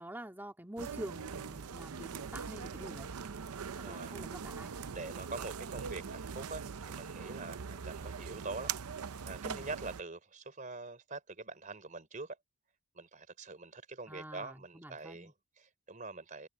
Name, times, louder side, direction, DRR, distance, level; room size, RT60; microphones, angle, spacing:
voice 1, 0.0-3.1 3.8-4.8 9.4-9.7 14.1-15.3, right 1 dB, 10° right, 2.3 m, -46 dB
sound 1, 0.8-10.0, right 6 dB, 80° right, 0.6 m, -42 dB
voice 2, 3.8-4.2 4.9-12.4 13.0-16.5, right 3 dB, 35° right, 3.8 m, -45 dB
head